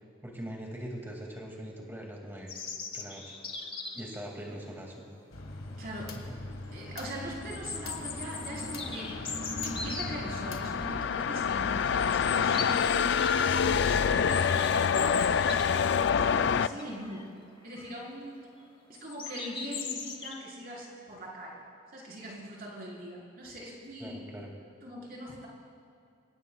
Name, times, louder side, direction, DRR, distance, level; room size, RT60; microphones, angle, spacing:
voice 1, 0.2-2.5 2.9-3.3 3.9-5.1 6.3-6.4 24.0-24.5, equal, 10° right, -1 dB, 2.2 m, -41 dB
sound 1, 2.5-4.2 5.7-5.8 6.2-6.3 7.4-10.1 10.8-11.1 11.4-11.5 12.0-13.4 13.7-16.0 16.3-16.4 16.8-17.3 17.7-18.1 18.9-20.3, left 5 dB, 25° left, 1.1 m, -39 dB
sound 2, 5.3-11.0, left 1 dB, 90° left, 1.7 m, -41 dB
voice 2, 5.8-6.1 6.7-9.2 9.6-12.9 13.5-17.2 17.6-18.4 18.9-21.6 21.9-24.3 24.8-25.5, equal, 45° right, -4 dB, 4.2 m, -41 dB
sound 3, 8.7-16.7, left 7 dB, 55° left, 0.3 m, -27 dB
25.5 x 17.0 x 2.3 m, 2.5 s
head